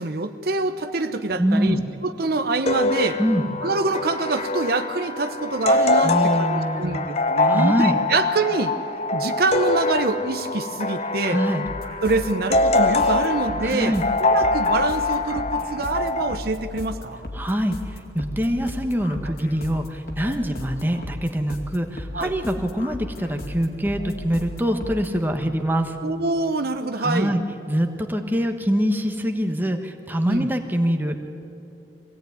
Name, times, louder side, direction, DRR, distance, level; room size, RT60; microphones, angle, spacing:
voice 1, 0.0-3.2 3.6-8.7 9.1-11.4 12.0-17.2 19.2-19.3 22.1-22.3 26.0-27.4 30.3-30.5, right 3 dB, 60° right, 8 dB, 0.9 m, -25 dB
voice 2, 1.4-1.8 3.2-3.5 6.0-7.1 7.4-7.9 11.2-11.6 13.6-14.0 17.3-25.9 27.0-27.4 27.7-31.2, equal, 10° right, 5 dB, 1.2 m, -24 dB
sound 1, 2.7-16.4, left 2 dB, 40° left, 0.7 m, -24 dB
sound 2, 11.6-25.1, left 1 dB, 60° left, 2.4 m, -36 dB
23.5 x 17.0 x 9.4 m, 2.9 s
head